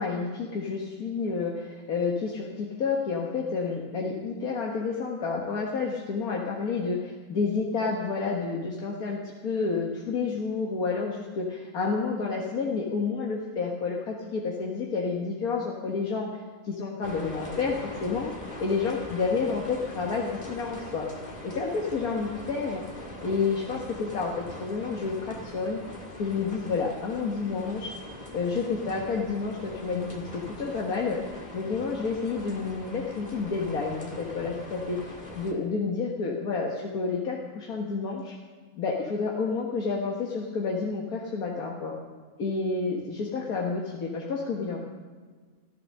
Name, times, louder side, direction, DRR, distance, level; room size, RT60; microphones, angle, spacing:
voice 1, 0.0-16.3 16.6-18.3 18.6-21.1 21.4-22.8 23.2-25.8 26.2-27.9 28.3-31.2 31.5-38.4 38.7-41.9 42.4-44.8, left 4 dB, 90° left, -2 dB, 1.9 m, -30 dB
sound 1, 17.0-35.5, left 1 dB, 30° left, 2.0 m, -42 dB
14.0 x 13.5 x 6.5 m, 1.5 s
omnidirectional pair, 1.5 m